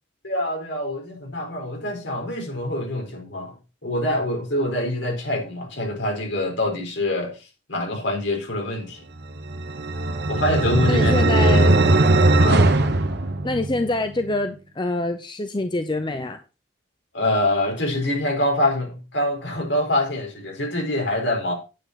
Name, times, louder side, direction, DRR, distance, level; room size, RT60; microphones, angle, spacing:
voice 1, 0.2-3.5 3.8-9.0 10.3-11.3 12.4-12.8 17.1-21.5, left 1 dB, 65° left, 4.6 m, -25 dB
sound 1, 9.4-13.9, right 2 dB, 55° right, 1.1 m, -19 dB
voice 2, 10.9-11.8 13.4-16.4, left 2 dB, 25° left, 0.7 m, -25 dB
9.1 x 8.3 x 4.1 m
head